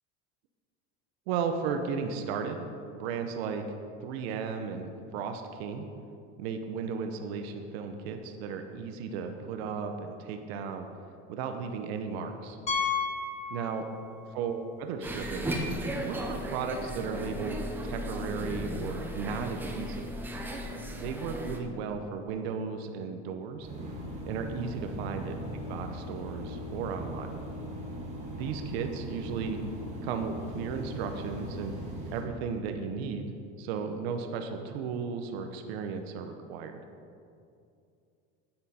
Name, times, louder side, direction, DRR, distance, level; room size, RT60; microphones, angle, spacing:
voice 1, 1.3-2.7 2.9-3.6 4.0-5.9 6.4-10.9 11.3-12.6 13.5-13.9 14.3-15.5 16.0-20.1 20.9-23.7 24.2-25.4 25.7-27.3 28.3-29.6 30.0-31.7 32.1-36.8, right 6 dB, 85° right, 5 dB, 0.9 m, -35 dB
Piano, 12.7-14.3 14.5-14.7 15.3-15.4 15.6-15.7 17.8-17.9, left 5 dB, 20° left, 0.9 m, -32 dB
sound 1, 15.0-21.6, equal, 5° right, 0.5 m, -35 dB
sound 2, 23.6-32.2, equal, 20° right, 1.5 m, -39 dB
9.5 x 8.9 x 4.3 m, 2.5 s
cardioid pair, 170°, 31 cm